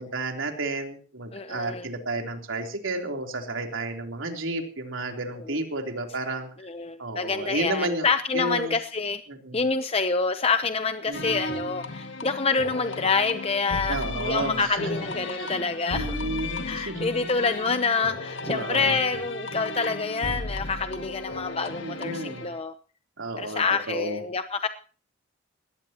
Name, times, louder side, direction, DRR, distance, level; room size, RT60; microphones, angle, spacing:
voice 1, 0.0-6.5 7.0-8.1 8.3-8.8 9.3-9.6 11.1-11.4 13.9-15.5 15.9-17.1 18.5-19.0 21.8-22.5 23.2-24.2, right 2 dB, 75° right, 3.5 m, -32 dB
voice 2, 1.3-1.9 5.5-5.6 6.6-9.2 9.5-16.2 16.7-22.7 23.4-24.7, left 4 dB, 30° left, 0.8 m, -27 dB
sound 1, 11.1-22.6, left 2 dB, 65° left, 1.8 m, -35 dB
20.5 x 17.0 x 3.0 m
head